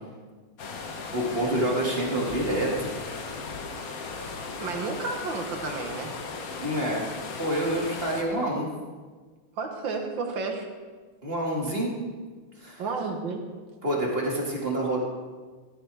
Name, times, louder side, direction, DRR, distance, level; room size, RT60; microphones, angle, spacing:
sound 1, 0.6-8.2, left 4 dB, 50° left, 1.2 m, -37 dB
voice 1, 1.1-2.9 6.5-7.1 7.4-8.7 11.2-11.9 12.6-12.8 13.8-15.0, right 1 dB, 25° right, -3 dB, 2.2 m, -27 dB
voice 2, 4.6-6.1 9.6-10.7 12.8-13.4, right 4 dB, 60° right, 3 dB, 1.9 m, -31 dB
15.0 x 13.0 x 3.5 m, 1.4 s
omnidirectional pair, 2.4 m